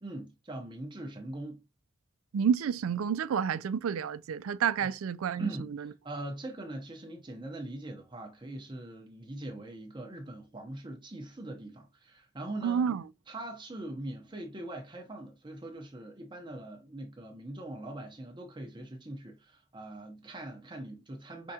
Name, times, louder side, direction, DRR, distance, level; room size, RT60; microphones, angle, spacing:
voice 1, 0.0-1.6 4.8-4.9 5.4-12.8 13.3-21.5, right 1 dB, 20° right, 0.7 m, -42 dB
voice 2, 2.3-5.5 12.6-13.0, right 7 dB, 85° right, 0.4 m, -29 dB
5.3 x 3.6 x 2.8 m
head